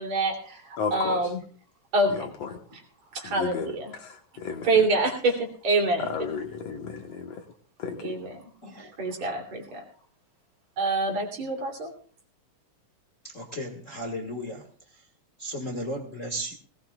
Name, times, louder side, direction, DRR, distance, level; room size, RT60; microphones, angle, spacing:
voice 1, 0.0-1.3 1.9-2.2 3.1-3.9 4.6-5.4 5.6-6.0 8.0-8.2 9.0-9.8 10.8-11.9, right 2 dB, 60° right, 2 dB, 4.2 m, -25 dB
voice 2, 0.8-1.3 2.1-2.6 3.2-4.9 6.0-7.5 7.8-8.2, left 6 dB, 60° left, 4 dB, 2.2 m, -34 dB
voice 3, 13.3-14.7 15.4-16.5, equal, 30° left, 3 dB, 1.6 m, -34 dB
19.5 x 18.5 x 2.4 m, 0.43 s
omnidirectional pair, 3.5 m